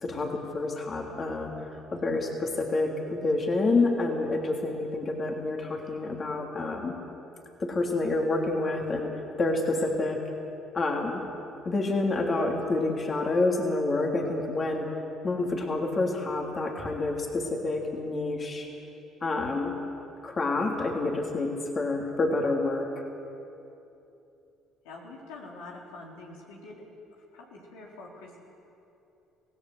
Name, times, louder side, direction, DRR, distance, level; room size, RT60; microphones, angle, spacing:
voice 1, 0.0-1.5 1.9-7.0 7.6-10.2 10.7-11.2 11.6-14.9 15.2-18.7 19.2-19.8 20.2-22.9, left 2 dB, 40° left, 1 dB, 3.3 m, -28 dB
voice 2, 24.8-26.8 27.3-28.4, left 2 dB, 85° left, -2 dB, 4.2 m, -45 dB
26.0 x 17.5 x 8.0 m, 2.8 s
hypercardioid pair, 65°, 0 cm